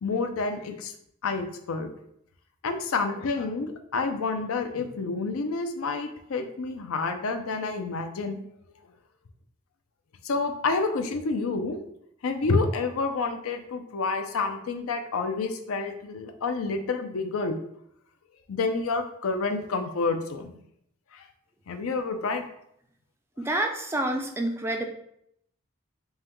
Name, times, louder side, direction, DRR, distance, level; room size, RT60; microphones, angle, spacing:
voice 1, 0.0-0.9 1.2-1.9 2.6-8.4 10.2-11.8 12.2-17.6 18.5-20.5 21.1-21.3 21.7-22.4, left 3 dB, 80° left, 6 dB, 0.5 m, -29 dB
voice 2, 23.4-24.8, right 1 dB, 10° right, 3 dB, 0.3 m, -28 dB
5.4 x 2.2 x 3.0 m, 0.73 s
head